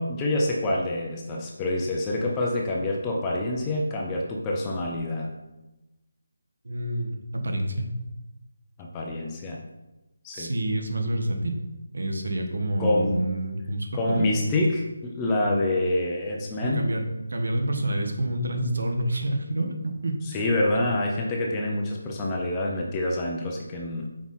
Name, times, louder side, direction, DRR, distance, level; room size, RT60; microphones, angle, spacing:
voice 1, 0.0-5.3 8.8-9.6 10.2-10.6 12.8-13.2 13.9-16.8 20.3-24.1, left 1 dB, 10° left, -1 dB, 0.4 m, -26 dB
voice 2, 6.6-7.9 10.3-11.6 11.9-14.2 16.6-17.0 17.3-20.2 20.8-20.9, right 1 dB, 65° right, 4 dB, 1.3 m, -28 dB
5.9 x 4.3 x 5.6 m, 1.0 s
figure-of-eight pair, 180°, 0 cm